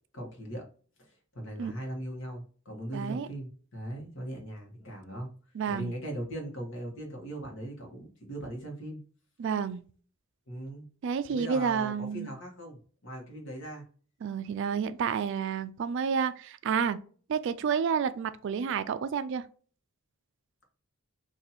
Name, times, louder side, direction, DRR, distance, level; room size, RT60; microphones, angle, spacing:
voice 1, 0.1-0.6 1.0-5.3 5.7-9.0 10.5-10.9 11.3-13.8, right 1 dB, 60° left, 1.2 m, -39 dB
voice 2, 2.9-3.3 5.5-5.9 9.4-9.8 11.0-12.3 14.2-17.0 17.3-19.4, right 6 dB, 55° right, 0.3 m, -30 dB
2.8 x 2.6 x 4.0 m
head